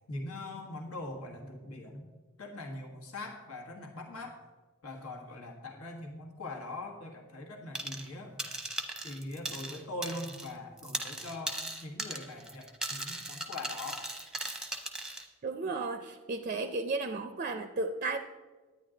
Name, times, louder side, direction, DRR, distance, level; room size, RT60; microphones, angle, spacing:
voice 1, 0.1-2.1 2.4-4.4 4.8-8.5 9.0-11.6 11.8-14.0, left 2 dB, 80° left, 2 dB, 1.6 m, -42 dB
sound 1, 7.7-8.1 8.4-10.5 10.8-15.2, right 2 dB, 5° right, 0.8 m, -38 dB
voice 2, 15.4-18.2, right 3 dB, 35° right, 8 dB, 0.4 m, -34 dB
10.5 x 9.5 x 3.8 m, 1.3 s
head